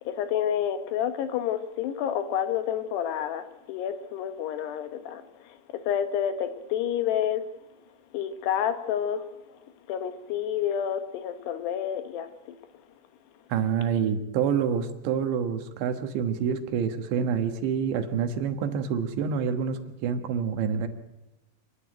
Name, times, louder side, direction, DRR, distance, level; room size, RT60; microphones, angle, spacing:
voice 1, 0.1-5.2 5.9-7.4 8.1-9.2 9.9-12.3, left 9 dB, 75° left, 3.1 m, -29 dB
voice 2, 13.5-20.9, right 7 dB, 80° right, 3.6 m, -27 dB
28.0 x 11.0 x 9.1 m
omnidirectional pair, 5.1 m